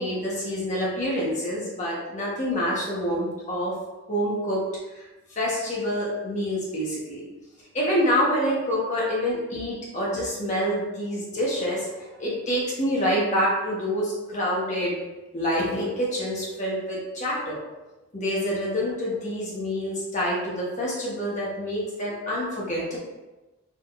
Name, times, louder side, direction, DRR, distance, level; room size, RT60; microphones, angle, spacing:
voice 1, 0.0-3.8 4.1-4.6 4.9-5.0 5.3-7.3 7.7-14.9 15.3-17.6 18.1-23.0, equal, 35° left, -6 dB, 1.3 m, -27 dB
4.4 x 3.8 x 2.6 m, 1.1 s
head